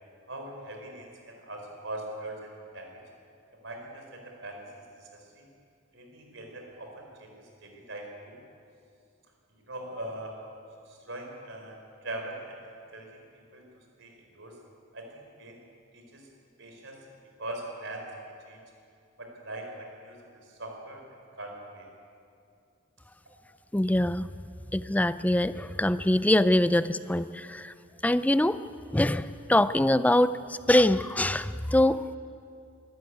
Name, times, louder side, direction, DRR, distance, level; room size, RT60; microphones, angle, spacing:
voice 1, 0.3-3.0 3.5-5.5 5.9-8.4 9.5-10.4 10.9-12.6 12.9-13.1 13.5-14.6 14.9-15.6 15.9-16.3 16.6-17.0 17.4-18.1 18.5-18.6 19.2-21.9, right 1 dB, 65° right, 2 dB, 4.7 m, -41 dB
voice 2, 23.7-24.3 24.7-27.7 28.0-32.0, left 1 dB, 10° left, 14 dB, 0.5 m, -24 dB
24.0 x 13.5 x 9.5 m, 2.5 s
head